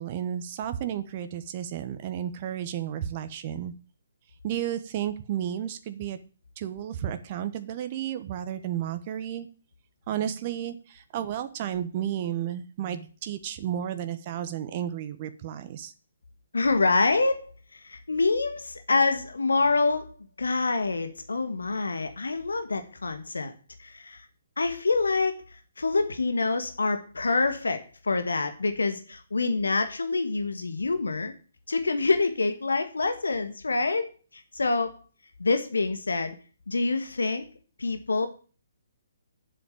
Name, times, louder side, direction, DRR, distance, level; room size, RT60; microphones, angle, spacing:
voice 1, 0.0-3.7 4.4-6.2 6.6-9.5 10.1-15.9, right 10 dB, 35° right, 10 dB, 1.1 m, -32 dB
voice 2, 16.5-23.5 23.8-24.3 24.6-25.4 25.8-31.3 31.7-35.0 35.4-36.4 36.7-37.5 37.8-38.3, left 3 dB, 70° left, 8 dB, 1.6 m, -26 dB
7.8 x 7.7 x 8.7 m, 0.37 s
figure-of-eight pair, 130°, 0 cm